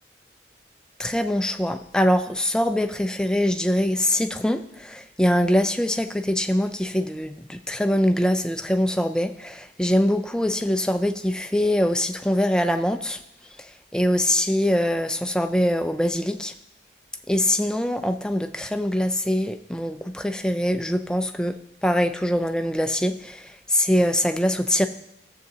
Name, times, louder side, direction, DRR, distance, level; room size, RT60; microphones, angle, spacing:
voice 1, 1.0-13.2 13.6-16.5 17.3-21.6 21.8-24.9, equal, 5° left, 7 dB, 0.4 m, -23 dB
16.5 x 7.4 x 2.8 m, 0.83 s
head